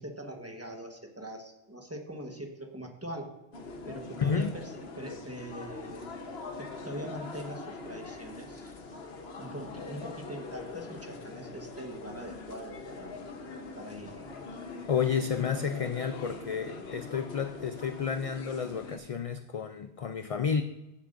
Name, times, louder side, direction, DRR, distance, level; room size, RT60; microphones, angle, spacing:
voice 1, 0.0-3.3 3.9-6.0 6.6-8.7 9.4-13.2 13.7-14.3, right 1 dB, 15° right, 2 dB, 1.2 m, -42 dB
sound 1, 3.5-19.0, left 3 dB, 70° left, 1.3 m, -43 dB
voice 2, 4.2-4.5 14.9-20.6, left 6 dB, 50° left, 9 dB, 0.4 m, -31 dB
15.5 x 8.1 x 2.6 m, 0.99 s
omnidirectional pair, 1.1 m